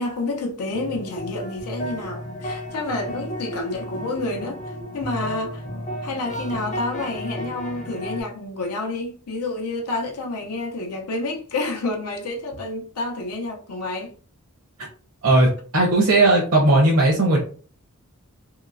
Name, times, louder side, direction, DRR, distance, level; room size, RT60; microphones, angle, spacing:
voice 1, 0.0-5.6 6.0-14.1, left 2 dB, 85° left, 0.6 m, -29 dB
sound 1, 0.7-8.2, equal, 35° left, 0.6 m, -33 dB
voice 2, 15.2-17.4, right 2 dB, 65° right, 0.8 m, -17 dB
2.9 x 2.9 x 2.5 m
head